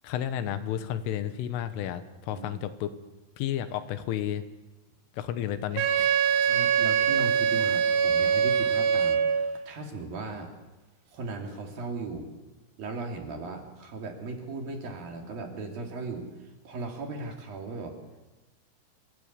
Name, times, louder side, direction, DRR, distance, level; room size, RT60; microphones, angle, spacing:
voice 1, 0.0-2.9 3.4-4.4 5.1-6.4, left 11 dB, 85° left, 10 dB, 3.7 m, -32 dB
Wind instrument woodwind instrument, 5.8-9.5, right 7 dB, 80° right, 3.9 m, -23 dB
voice 2, 6.4-9.2 9.7-10.5 11.1-12.3 12.8-18.0, right 3 dB, 50° right, 2 dB, 4.1 m, -37 dB
26.5 x 17.5 x 8.3 m, 1.2 s
omnidirectional pair, 5.7 m